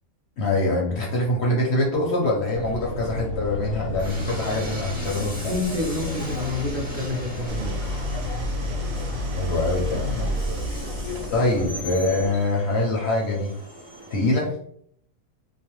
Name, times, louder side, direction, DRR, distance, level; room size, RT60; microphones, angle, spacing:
voice 1, 0.4-5.5 9.4-10.3 11.3-13.5 14.1-14.5, left 2 dB, 65° left, -2 dB, 0.7 m, -24 dB
sound 1, 2.5-12.3, left 3 dB, 90° left, 1.1 m, -34 dB
Train, 4.0-14.3, equal, 15° right, 0.3 m, -40 dB
voice 2, 5.3-7.8, left 1 dB, 55° right, -1 dB, 0.6 m, -28 dB
Idling, 7.5-11.7, equal, 75° right, 0.9 m, -30 dB
2.4 x 2.1 x 2.9 m, 0.65 s
omnidirectional pair, 1.5 m